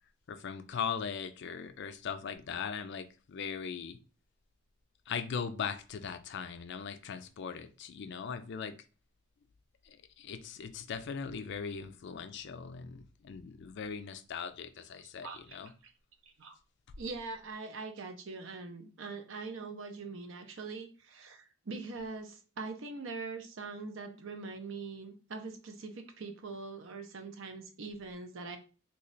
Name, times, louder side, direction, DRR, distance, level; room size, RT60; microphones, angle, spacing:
voice 1, 0.3-4.0 5.1-8.8 9.8-15.7, left 6 dB, 55° left, 0.4 m, -39 dB
voice 2, 15.2-15.6 15.8-15.9 16.4-16.5 17.0-28.6, right 4 dB, 65° right, 0.7 m, -42 dB
3.1 x 2.3 x 3.9 m
head